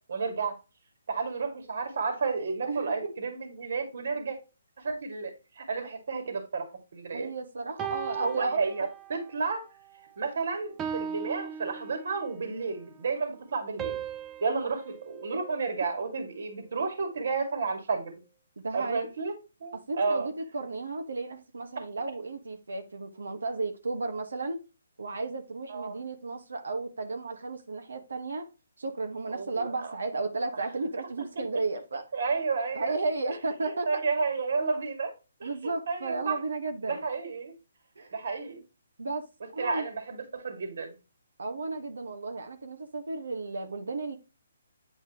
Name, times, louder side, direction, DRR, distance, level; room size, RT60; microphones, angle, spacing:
voice 1, 0.1-0.6 1.1-4.4 4.8-6.7 6.9-7.3 8.2-9.6 10.2-14.0 14.4-18.1 18.7-19.3 19.6-20.3 25.7-26.0 29.3-29.9 32.1-32.9 33.9-35.1 35.4-36.4 36.8-37.5 38.1-38.6 39.6-41.0, right 4 dB, 65° right, 2.2 m, -31 dB
voice 2, 2.7-3.1 7.1-8.6 15.3-15.4 18.6-19.1 19.9-24.6 25.0-28.5 28.8-32.1 32.7-33.9 35.4-37.0 37.9-38.1 39.0-39.9 41.4-44.2, right 3 dB, 80° right, 1.5 m, -34 dB
sound 1, 7.8-9.3 9.8-10.1 10.8-12.5 13.8-16.2, right 8 dB, 15° right, 0.6 m, -39 dB
8.9 x 4.4 x 3.0 m
hypercardioid pair, 150°, 0 cm